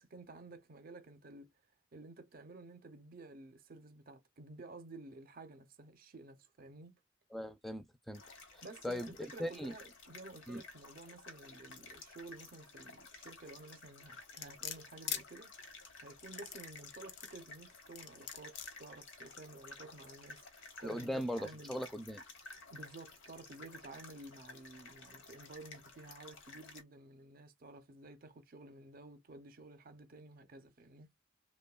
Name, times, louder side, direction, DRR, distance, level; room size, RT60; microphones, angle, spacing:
voice 1, 0.0-1.5 1.9-7.0 8.6-15.5 16.0-20.5 20.8-21.8 22.7-31.1, right 2 dB, 50° right, 0.6 m, -52 dB
voice 2, 7.3-8.2 8.5-9.1 9.4-9.7 10.5-10.6 20.8-22.2, equal, ahead, 0.4 m, -39 dB
sound 1, 8.1-26.8, left 3 dB, 80° left, 1.0 m, -54 dB
sound 2, 14.4-15.2 16.2-17.4 18.0-18.7 19.3-19.4, left 9 dB, 60° left, 0.5 m, -42 dB
3.0 x 2.2 x 2.2 m
head